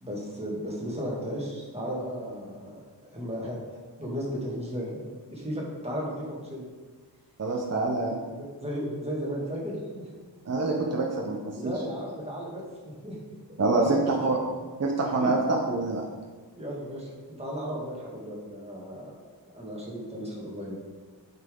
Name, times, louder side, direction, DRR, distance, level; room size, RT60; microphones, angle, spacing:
voice 1, 0.0-2.8 3.1-3.6 4.0-6.6 8.4-10.1 11.6-13.2 13.7-14.1 15.2-15.3 16.6-19.1 19.5-20.7, equal, 15° right, -4 dB, 2.1 m, -34 dB
voice 2, 7.4-8.2 10.5-11.7 13.6-14.4 14.8-16.1, right 2 dB, 35° right, -1 dB, 0.9 m, -26 dB
8.7 x 5.8 x 3.8 m, 1.4 s
wide cardioid pair, 115°, 43 cm